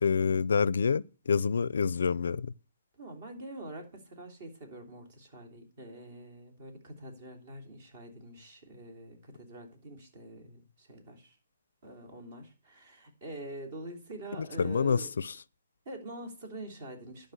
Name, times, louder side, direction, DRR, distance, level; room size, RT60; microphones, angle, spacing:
voice 1, 0.0-2.5 14.6-15.3, left 5 dB, 75° left, 0.4 m, -27 dB
voice 2, 3.0-11.4 11.8-15.2 15.8-17.3, right 1 dB, 45° right, 3.3 m, -45 dB
11.5 x 5.2 x 8.0 m
hypercardioid pair, 155°, 0 cm